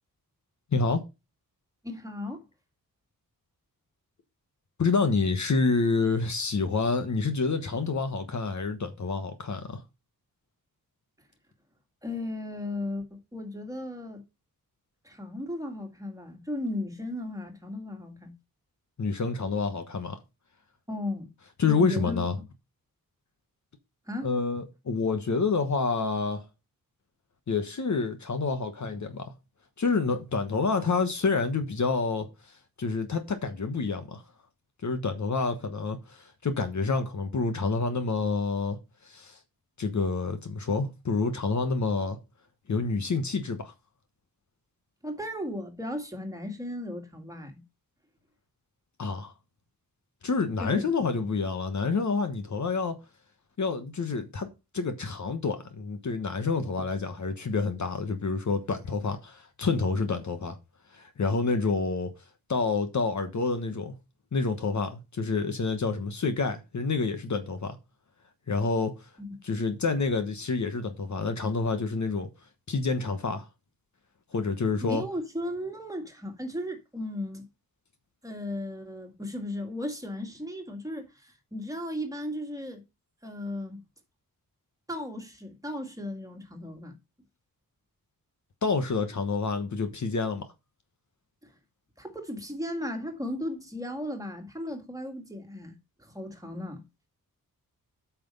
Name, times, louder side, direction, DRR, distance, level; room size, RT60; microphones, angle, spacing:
voice 1, 0.7-1.0 4.8-9.8 19.0-20.2 21.6-22.3 24.2-26.4 27.5-29.3 29.8-32.3 32.8-34.2 34.8-38.8 39.1-39.4 39.8-42.2 42.7-43.7 49.0-49.3 50.2-53.0 53.6-54.5 54.7-60.6 60.9-62.1 62.5-63.9 64.3-67.8 68.5-69.0 69.4-72.3 72.7-73.5 74.3-75.0 88.6-90.5, left 4 dB, 50° left, 1.3 m, -28 dB
voice 2, 1.8-2.5 12.0-13.0 13.3-14.2 15.0-18.3 20.9-21.3 21.7-22.2 24.1-24.3 45.0-47.6 50.6-50.9 51.2-51.3 69.2-69.3 74.8-77.4 78.2-82.8 83.2-83.8 84.9-87.0 92.0-96.8, left 1 dB, 10° right, 2.0 m, -35 dB
8.6 x 5.9 x 5.4 m
wide cardioid pair, 175°, 35 cm